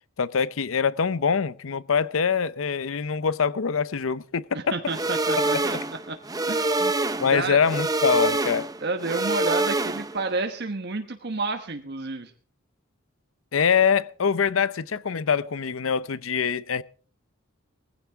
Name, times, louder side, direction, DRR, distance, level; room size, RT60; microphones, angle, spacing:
voice 1, 0.2-4.7 5.5-5.8 6.8-6.9 7.2-8.7 13.5-16.8, left 6 dB, 80° left, 0.6 m, -24 dB
voice 2, 4.5-5.8 6.1-6.2 6.5-6.8 7.3-7.6 8.8-12.3, right 3 dB, 55° right, 1.2 m, -30 dB
sound 1, 4.9-10.3, right 2 dB, 20° right, 0.7 m, -26 dB
20.0 x 15.5 x 3.5 m
head